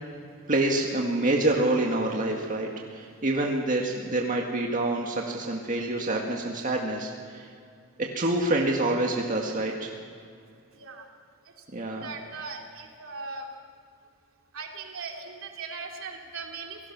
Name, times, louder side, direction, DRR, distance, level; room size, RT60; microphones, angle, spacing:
voice 1, 0.5-7.5 8.0-9.9 11.7-12.1, right 2 dB, 40° right, 0 dB, 1.9 m, -27 dB
voice 2, 10.7-11.1 11.8-13.5 14.5-16.9, right 4 dB, 75° right, 1 dB, 3.1 m, -39 dB
28.5 x 17.5 x 6.1 m, 2.2 s
head